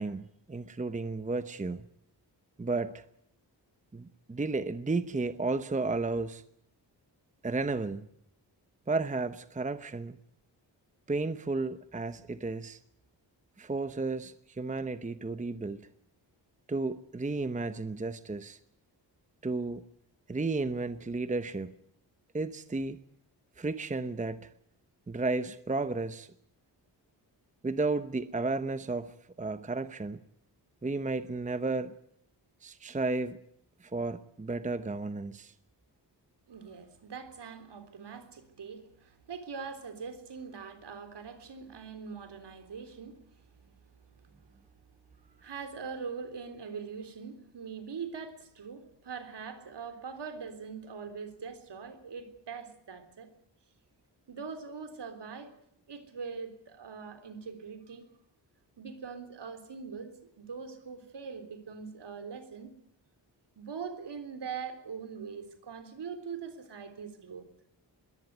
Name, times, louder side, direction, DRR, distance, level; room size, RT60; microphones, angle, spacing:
voice 1, 0.0-1.9 2.6-3.0 3.9-6.4 7.4-8.1 8.9-10.2 11.1-12.8 13.6-15.9 16.7-18.6 19.4-19.8 20.3-21.7 22.3-23.0 23.6-24.5 25.1-26.3 27.6-29.1 29.4-30.2 30.8-31.9 32.6-33.4 33.8-35.5, right 3 dB, 15° right, 12 dB, 0.8 m, -33 dB
voice 2, 36.5-43.4 44.2-44.3 45.2-53.3 54.3-55.5 55.9-58.0 58.8-62.7 63.6-67.4, right 5 dB, 65° right, 8 dB, 3.7 m, -42 dB
21.5 x 17.5 x 8.2 m, 0.72 s
wide cardioid pair, 130°, 44 cm